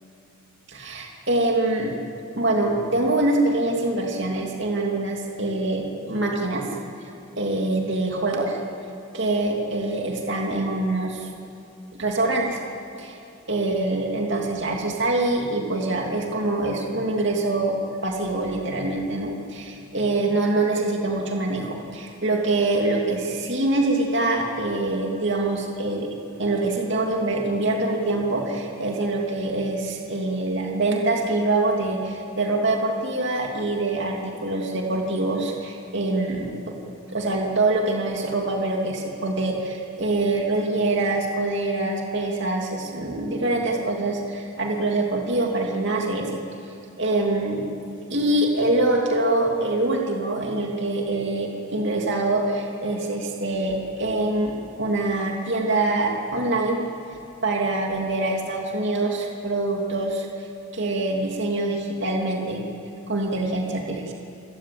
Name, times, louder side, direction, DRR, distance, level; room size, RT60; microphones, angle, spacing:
voice 1, 0.7-2.0 2.4-6.7 7.3-8.6 9.1-11.3 12.0-12.6 13.0-13.2 13.5-17.8 18.0-26.1 26.4-36.7 37.1-46.4 47.0-47.6 48.1-56.8 57.4-60.3 60.7-62.6 63.1-64.1, right 2 dB, 55° right, 0 dB, 2.8 m, -24 dB
29.0 x 17.5 x 8.6 m, 2.7 s
head